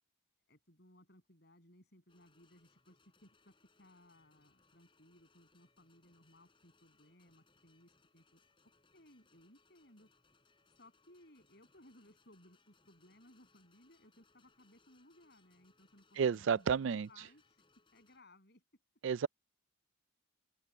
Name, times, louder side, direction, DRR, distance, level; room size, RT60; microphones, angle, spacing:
voice 1, 0.5-8.4 8.9-10.1 10.7-17.6 17.9-18.6, left 1 dB, 50° left, 7.6 m, -63 dB
sound 1, 2.1-18.2, left 4 dB, 25° left, 7.0 m, -72 dB
voice 2, 16.2-17.1 19.0-19.3, right 6 dB, 65° right, 0.4 m, -31 dB
open air
head